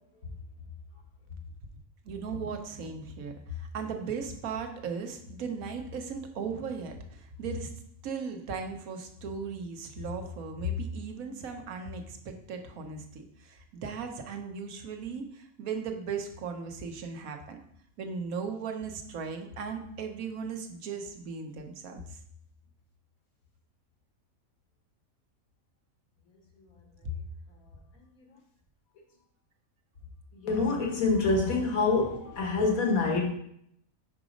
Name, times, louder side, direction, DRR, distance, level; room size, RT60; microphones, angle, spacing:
voice 1, 2.0-7.7 8.0-17.6 18.0-22.2 27.0-27.1, right 4 dB, 85° right, 5 dB, 1.3 m, -37 dB
voice 2, 30.3-33.3, left 3 dB, 85° left, 0 dB, 1.8 m, -26 dB
4.9 x 4.7 x 5.0 m, 0.71 s
omnidirectional pair, 1.4 m